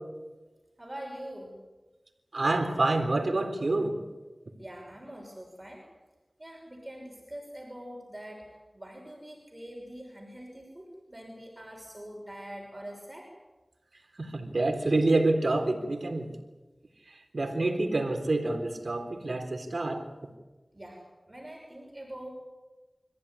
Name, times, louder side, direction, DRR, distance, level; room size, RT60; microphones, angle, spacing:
voice 1, 0.8-1.6 4.6-5.9 6.4-13.4 20.7-22.3, right 1 dB, 25° right, 0 dB, 5.9 m, -44 dB
voice 2, 2.3-4.0 14.2-16.3 17.3-20.0, right 2 dB, 70° right, 5 dB, 3.8 m, -27 dB
26.5 x 15.0 x 9.9 m, 1.2 s
wide cardioid pair, 50°, 0 cm